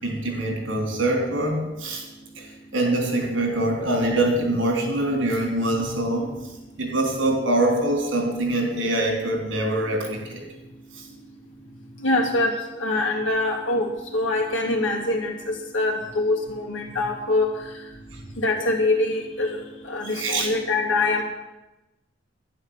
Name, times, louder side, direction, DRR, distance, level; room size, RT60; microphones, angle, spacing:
voice 1, 0.0-2.0 2.4-2.5 2.7-6.3 6.8-10.4 20.0-20.5, right 1 dB, 90° right, 1 dB, 3.7 m, -24 dB
voice 2, 12.0-12.5 12.8-17.5 18.4-19.6 19.9-21.2, left 2 dB, 90° left, 0 dB, 2.6 m, -24 dB
11.0 x 10.5 x 7.3 m, 1.0 s
head